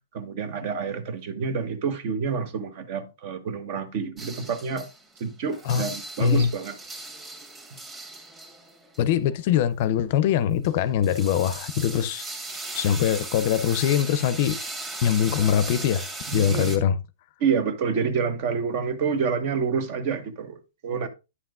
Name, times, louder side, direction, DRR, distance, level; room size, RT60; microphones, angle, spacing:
voice 1, 0.1-4.9 5.2-6.8 16.3-16.8 17.4-21.1, right 6 dB, 50° right, 1.0 m, -28 dB
sound 1, 4.2-5.3 5.5-9.5 10.6-16.8, right 2 dB, 20° right, 1.6 m, -38 dB
voice 2, 6.2-6.5 9.0-12.3 12.7-14.6 15.0-16.1 16.3-17.0, left 9 dB, 50° left, 0.5 m, -22 dB
9.6 x 5.9 x 2.5 m
hypercardioid pair, 150°, 0 cm